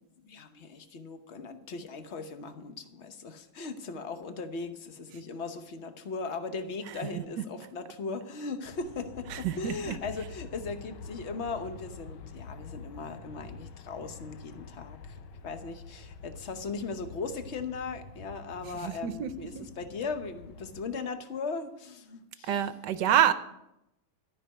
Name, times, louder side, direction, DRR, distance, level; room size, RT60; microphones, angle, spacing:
voice 1, 0.2-15.2 15.4-22.6, left 4 dB, 45° left, 8 dB, 0.9 m, -38 dB
Aircraft, 8.6-20.8, left 5 dB, 80° left, 1.7 m, -47 dB
voice 2, 9.3-10.0 18.8-19.7 22.5-23.3, right 10 dB, 70° right, 13 dB, 1.2 m, -27 dB
13.0 x 5.9 x 9.6 m, 0.87 s
omnidirectional pair, 2.3 m